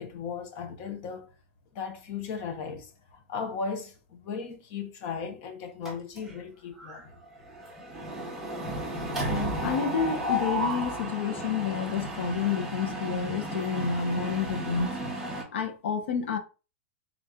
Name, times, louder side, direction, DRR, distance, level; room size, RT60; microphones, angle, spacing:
voice 1, 0.0-1.3 1.7-7.2, left 5 dB, 30° left, 0.7 m, -37 dB
Mechanisms, 5.9-6.5 6.8-7.0 7.3-15.4, equal, 5° right, 0.8 m, -33 dB
voice 2, 9.6-15.0 15.5-16.4, left 6 dB, 60° left, 0.7 m, -29 dB
3.8 x 2.8 x 3.6 m
supercardioid pair, 175°, 7 cm